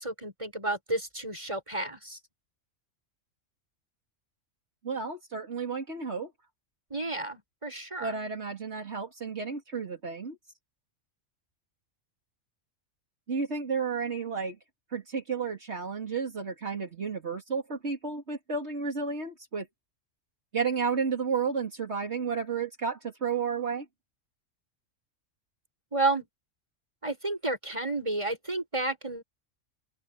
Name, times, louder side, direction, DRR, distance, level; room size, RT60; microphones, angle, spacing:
voice 1, 0.0-2.2 6.9-8.1 25.9-26.3 27.0-29.2, right 2 dB, 25° right, 6.9 m, -31 dB
voice 2, 4.8-6.3 8.0-10.4 13.3-14.6 14.9-19.7 20.5-23.9, right 5 dB, 60° right, 2.8 m, -32 dB
open air
omnidirectional pair, 1.3 m